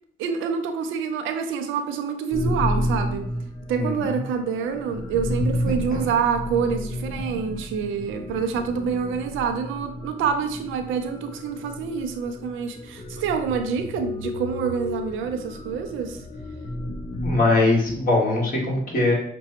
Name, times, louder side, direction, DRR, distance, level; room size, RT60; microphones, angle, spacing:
voice 1, 0.2-3.3 3.7-16.2, right 6 dB, 90° right, 6 dB, 0.5 m, -27 dB
sound 1, 2.3-17.4, left 1 dB, 30° left, 0.6 m, -31 dB
voice 2, 3.8-4.2 5.9-6.1 17.2-19.1, left 2 dB, 45° left, -3 dB, 1.7 m, -22 dB
5.9 x 2.2 x 2.9 m, 0.66 s
cardioid pair, 90°, 20 cm